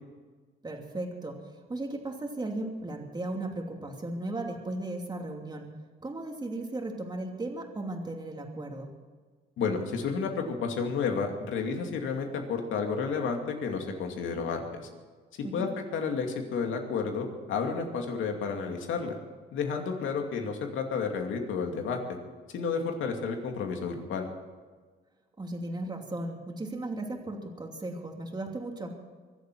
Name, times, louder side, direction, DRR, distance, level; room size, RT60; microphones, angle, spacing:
voice 1, 0.6-5.7 6.0-8.9 15.4-15.7 25.4-28.9, right 2 dB, 20° right, 2 dB, 2.7 m, -36 dB
voice 2, 9.6-14.9 15.5-19.2 19.5-22.0 22.5-24.3, left 5 dB, 80° left, 3 dB, 2.6 m, -31 dB
24.0 x 8.1 x 6.3 m, 1.4 s
cardioid pair, 90°, 20 cm